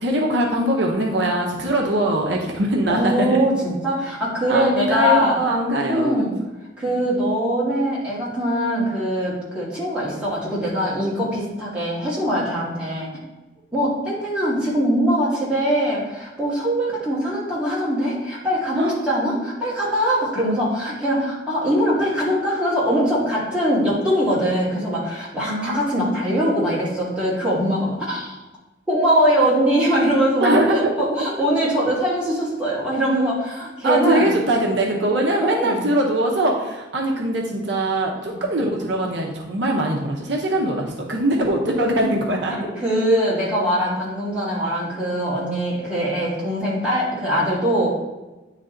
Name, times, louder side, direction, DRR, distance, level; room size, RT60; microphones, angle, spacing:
voice 1, 0.0-3.4 4.5-6.3 18.7-18.9 25.5-26.0 30.4-30.8 33.8-42.6, right 1 dB, 65° right, -1 dB, 0.8 m, -22 dB
voice 2, 2.9-5.4 5.8-6.4 6.8-13.1 13.7-28.4 28.9-34.3 35.4-35.9 38.2-38.3 42.8-47.9, equal, 5° right, -7 dB, 2.0 m, -22 dB
9.2 x 3.3 x 3.8 m, 1.1 s
head